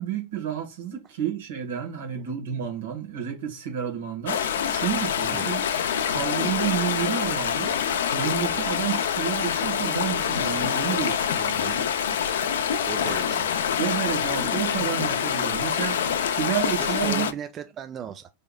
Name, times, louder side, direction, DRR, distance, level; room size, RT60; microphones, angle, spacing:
voice 1, 0.0-5.6 6.1-7.7 8.1-11.8 13.8-17.3, right 9 dB, 75° right, 1.2 m, -30 dB
sound 1, 4.3-17.3, left 8 dB, 80° left, 0.4 m, -26 dB
voice 2, 12.9-13.5 16.8-18.3, right 9 dB, 35° right, 0.4 m, -36 dB
3.5 x 3.4 x 2.2 m
hypercardioid pair, 100°, 0 cm